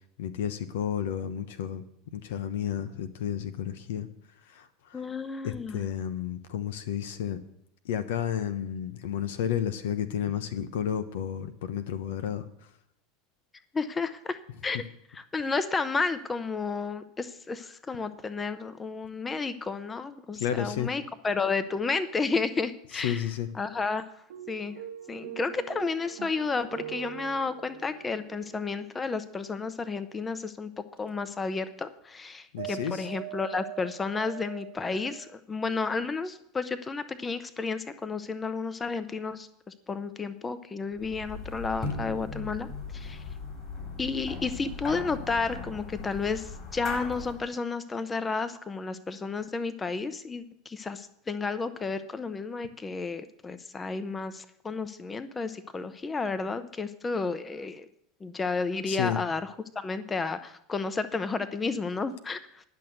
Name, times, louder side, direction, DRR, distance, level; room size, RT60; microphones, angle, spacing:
voice 1, 0.2-1.8 2.1-4.1 4.5-5.0 5.4-7.4 7.8-12.5 14.7-14.8 20.4-20.9 22.9-23.5 32.5-33.1 58.9-59.2, left 9 dB, 75° left, 10 dB, 1.0 m, -31 dB
voice 2, 4.9-5.8 13.7-14.4 14.6-14.8 15.1-23.2 23.6-24.0 24.5-24.8 25.1-39.5 39.9-42.7 42.9-43.2 44.0-57.9 58.2-59.4 59.7-62.6, left 4 dB, 20° left, 12 dB, 0.9 m, -32 dB
sound 1, 24.3-29.4 31.0-31.1 32.6-35.4, right 14 dB, 70° right, 1.1 m, -43 dB
sound 2, 41.0-47.5, left 4 dB, 35° left, 4.3 m, -38 dB
10.5 x 6.4 x 9.2 m, 0.74 s
hypercardioid pair, 90°, 0 cm